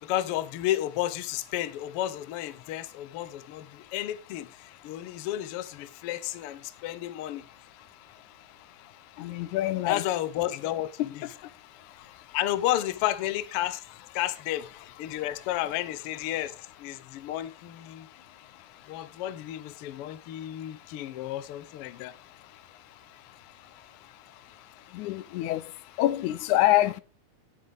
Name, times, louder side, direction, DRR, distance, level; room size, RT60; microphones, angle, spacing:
voice 1, 0.0-7.4 9.8-11.3 12.3-13.8 14.1-14.7 15.0-18.1 18.9-22.1, left 13 dB, 75° left, 1.3 m, -32 dB
voice 2, 9.2-10.0 11.0-11.1 24.9-25.6 26.0-27.0, left 15 dB, 90° left, 2.1 m, -25 dB
16.5 x 6.9 x 3.4 m
omnidirectional pair, 3.4 m